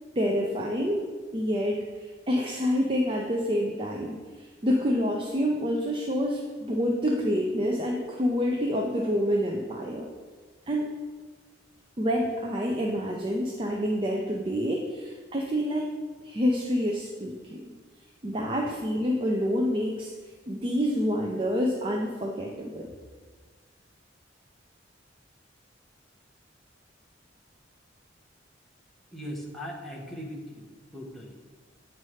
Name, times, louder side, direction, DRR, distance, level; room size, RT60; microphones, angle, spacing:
voice 1, 0.2-1.1 1.3-10.1 10.7-10.9 12.0-15.9 16.2-17.6 18.2-20.1 20.5-22.9, equal, 30° right, 0 dB, 0.6 m, -27 dB
voice 2, 29.1-31.3, equal, ahead, -3 dB, 1.0 m, -39 dB
8.7 x 3.2 x 5.6 m, 1.5 s
head